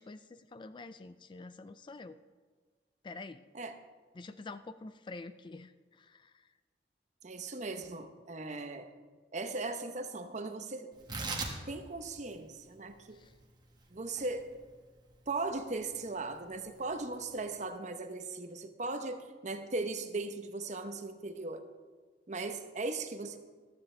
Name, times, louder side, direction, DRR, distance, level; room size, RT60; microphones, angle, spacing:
voice 1, 0.0-2.2 3.0-3.4 4.1-6.5 13.1-13.3, left 3 dB, 25° left, 12 dB, 0.3 m, -47 dB
voice 2, 7.2-8.9 9.3-10.9 11.7-13.2 13.9-14.5 15.3-21.6 22.3-23.4, right 3 dB, 40° right, 8 dB, 0.9 m, -38 dB
Tearing, 10.9-17.7, right 3 dB, 25° right, 1.5 m, -44 dB
14.5 x 12.5 x 3.3 m, 1.5 s
head